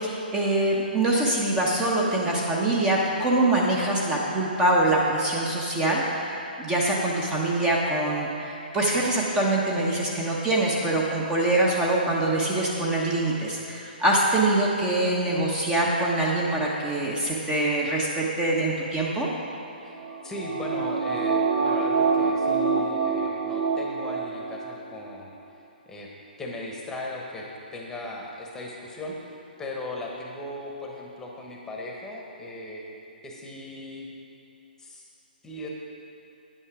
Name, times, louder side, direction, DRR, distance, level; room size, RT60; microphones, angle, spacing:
voice 1, 0.0-19.3, right 2 dB, 15° right, -3 dB, 1.0 m, -24 dB
voice 2, 19.8-25.6 25.9-26.1 26.4-32.8 33.2-34.1 34.8-35.1 35.4-35.7, left 1 dB, 10° left, -1 dB, 1.2 m, -38 dB
sound 1, 19.9-24.7 25.1-25.2, right 5 dB, 65° right, 1.2 m, -26 dB
9.5 x 8.7 x 4.9 m, 2.8 s
hypercardioid pair, 140°, 5 cm